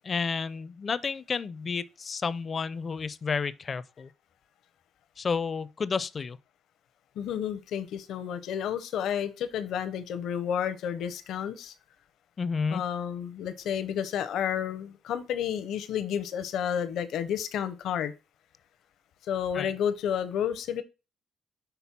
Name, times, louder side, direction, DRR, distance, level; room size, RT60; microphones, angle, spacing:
voice 1, 0.0-4.1 5.2-6.4 12.4-12.8 19.5-19.7, left 5 dB, 40° left, 0.4 m, -31 dB
voice 2, 7.2-11.7 12.7-18.1 19.3-20.8, left 9 dB, 80° left, 0.7 m, -31 dB
6.0 x 3.4 x 5.8 m
cardioid pair, 90°, 0 cm